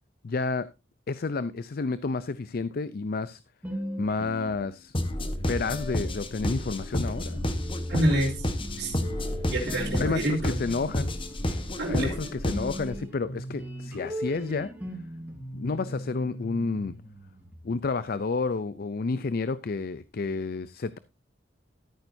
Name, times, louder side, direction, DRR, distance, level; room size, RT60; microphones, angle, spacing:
voice 1, 0.2-0.7 1.1-3.4 4.0-5.0 5.2-7.4 10.0-11.1 11.9-14.7 15.5-16.9 17.6-21.0, left 4 dB, 50° left, 15 dB, 0.5 m, -30 dB
sound 1, 3.6-5.1 5.6-17.8, equal, 10° right, 4.1 m, -39 dB
sound 2, 4.9-13.0, left 1 dB, 30° left, 1.2 m, -31 dB
voice 2, 7.9-8.5 8.8-9.0 9.5-10.6 11.8-12.1, right 1 dB, 60° right, -4 dB, 3.7 m, -27 dB
14.0 x 9.0 x 2.7 m, 0.25 s
head